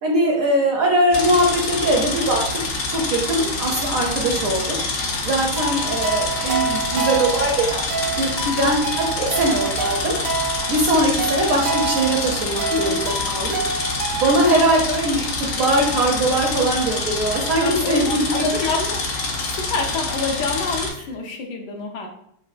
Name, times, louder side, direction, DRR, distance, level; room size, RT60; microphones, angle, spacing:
voice 1, 0.0-2.4 2.9-7.8 8.2-10.2 10.4-18.4, right 1 dB, 70° right, -1 dB, 0.9 m, -21 dB
sound 1, 1.1-20.9, left 3 dB, 65° left, 0.7 m, -26 dB
sound 2, 5.6-14.9, right 4 dB, 85° right, 1.3 m, -28 dB
voice 2, 12.7-13.0 17.6-19.0 19.3-22.1, left 4 dB, 80° left, 2 dB, 1.2 m, -27 dB
4.0 x 2.2 x 2.4 m, 0.71 s
omnidirectional pair, 1.9 m